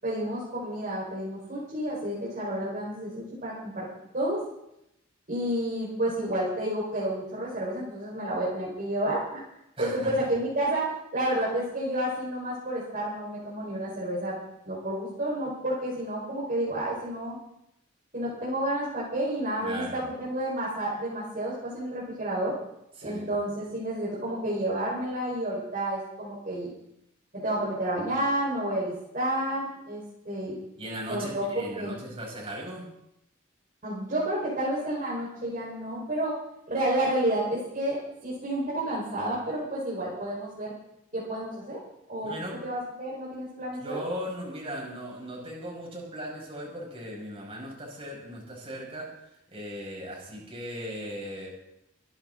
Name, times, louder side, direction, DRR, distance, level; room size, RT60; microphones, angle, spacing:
voice 1, 0.0-3.9 4.1-4.4 5.3-9.4 9.8-14.4 14.6-17.4 18.1-22.5 23.0-26.7 27.3-30.5 31.1-31.4 31.7-32.0 33.8-36.4 36.7-40.7 41.1-41.8 42.1-42.3 42.6-44.0, right 1 dB, 45° right, -6 dB, 4.9 m, -30 dB
voice 2, 9.8-10.1 19.6-20.0 23.0-23.3 30.8-32.9 42.2-42.6 43.8-49.1 49.5-51.5, equal, 30° right, -2 dB, 6.3 m, -38 dB
25.0 x 11.5 x 3.9 m, 0.82 s
head